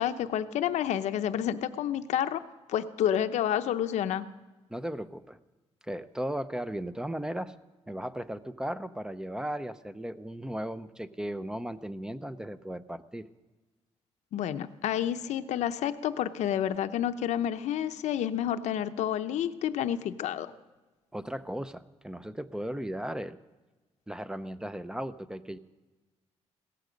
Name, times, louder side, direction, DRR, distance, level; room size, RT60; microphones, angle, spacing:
voice 1, 0.0-2.4 2.7-4.2 14.3-20.5, left 10 dB, 85° left, 10 dB, 0.7 m, -29 dB
voice 2, 4.7-5.4 5.8-7.5 7.9-13.3 21.1-23.4 24.1-25.6, right 1 dB, 5° right, 13 dB, 0.6 m, -36 dB
17.0 x 14.5 x 5.1 m, 1.2 s
cardioid pair, 130°, 12 cm